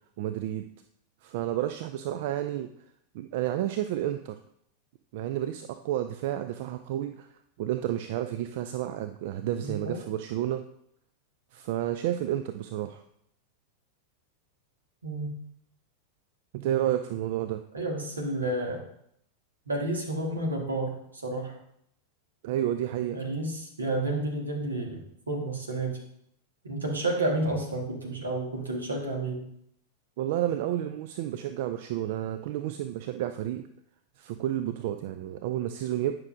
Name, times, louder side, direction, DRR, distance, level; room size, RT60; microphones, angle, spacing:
voice 1, 0.2-0.7 1.2-2.7 3.1-4.4 5.1-7.3 7.6-10.6 11.5-13.0 16.5-17.6 22.4-23.2 30.2-33.6 34.2-36.1, right 12 dB, 50° right, 9 dB, 0.3 m, -31 dB
voice 2, 9.6-10.0 15.0-15.3 17.7-18.8 19.7-21.6 23.1-26.0 26.6-29.4, right 2 dB, 75° right, 1 dB, 1.4 m, -31 dB
9.5 x 6.0 x 2.5 m, 0.72 s
figure-of-eight pair, 90°, 0 cm